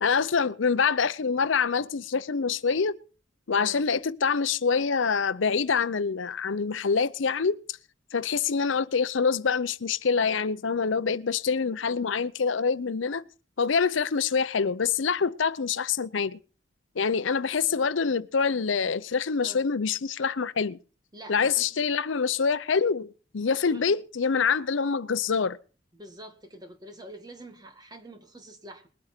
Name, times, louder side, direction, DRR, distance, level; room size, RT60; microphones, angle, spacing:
voice 1, 0.0-3.0 3.5-7.6 8.1-13.2 13.6-16.4 17.0-20.8 21.3-25.6, left 5 dB, 80° left, 0.6 m, -26 dB
voice 2, 3.5-3.9 19.4-19.7 21.1-21.7 23.7-24.0 25.9-28.9, right 1 dB, 20° right, 1.9 m, -46 dB
21.0 x 8.9 x 4.4 m
head